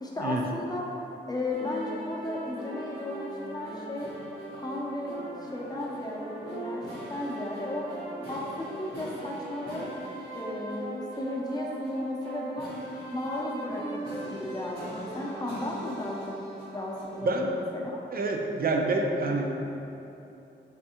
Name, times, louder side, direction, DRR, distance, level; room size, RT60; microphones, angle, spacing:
voice 1, 0.0-0.8 1.3-4.1 4.5-6.8 7.1-7.9 8.3-9.9 10.3-12.7 13.1-16.3 16.7-18.0, left 1 dB, 20° left, -3 dB, 0.7 m, -35 dB
sound 1, 1.5-17.3, right 1 dB, 90° right, 1.0 m, -39 dB
voice 2, 17.2-17.5 18.1-19.7, right 2 dB, 50° right, 2 dB, 0.5 m, -27 dB
3.5 x 3.3 x 2.8 m, 2.9 s
cardioid pair, 45°, 20 cm